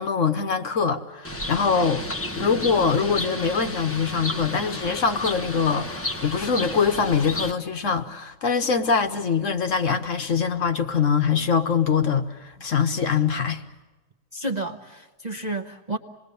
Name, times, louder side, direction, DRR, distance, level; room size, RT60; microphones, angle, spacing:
voice 1, 0.0-2.0 2.4-13.6, left 6 dB, 55° left, 1.2 m, -23 dB
Bird, 1.2-7.5, left 1 dB, 10° left, 0.8 m, -32 dB
voice 2, 14.3-16.0, right 2 dB, 35° right, 0.8 m, -31 dB
27.5 x 20.5 x 6.8 m
omnidirectional pair, 1.8 m